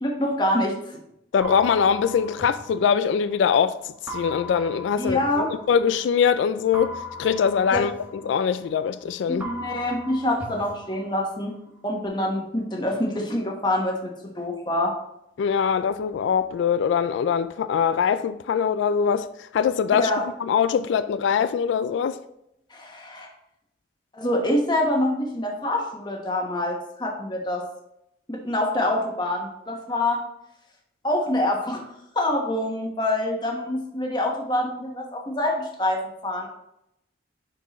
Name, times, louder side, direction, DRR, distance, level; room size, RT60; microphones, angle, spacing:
voice 1, 0.0-0.7 5.0-5.5 7.7-7.8 9.3-11.5 11.8-14.1 14.4-14.9 20.0-20.2 22.7-23.3 24.1-27.6 28.3-30.2 31.0-31.8 32.1-36.5, left 1 dB, 25° left, 1.2 m, -25 dB
voice 2, 1.3-6.9 7.2-7.9 8.2-9.5 15.4-20.1 20.4-22.2, left 7 dB, 90° left, 0.3 m, -22 dB
sound 1, 1.4-3.5 4.1-6.1 6.7-9.0 9.4-11.5, equal, 10° right, 0.7 m, -39 dB
9.9 x 4.4 x 3.1 m
head